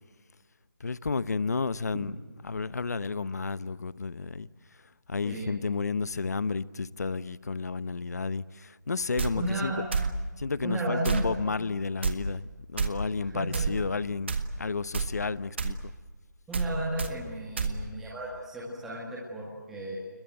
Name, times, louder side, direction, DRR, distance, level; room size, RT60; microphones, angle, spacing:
voice 1, 0.8-2.1 2.4-4.5 5.1-9.7 10.4-15.8, left 4 dB, 60° left, 0.9 m, -32 dB
voice 2, 5.2-5.6 9.3-9.8 10.6-11.4 13.2-13.7 16.5-20.0, right 1 dB, 5° right, 1.9 m, -34 dB
sound 1, 9.2-9.3 9.9-10.1 11.0-11.3 12.0-12.2 12.8-12.9 13.5-13.7 14.3-14.5 14.9-15.1 15.6-15.7 16.5-16.7 17.0-17.1 17.6-17.7, right 5 dB, 35° right, 1.8 m, -28 dB
29.0 x 22.0 x 7.9 m
hypercardioid pair, 175°, 10 cm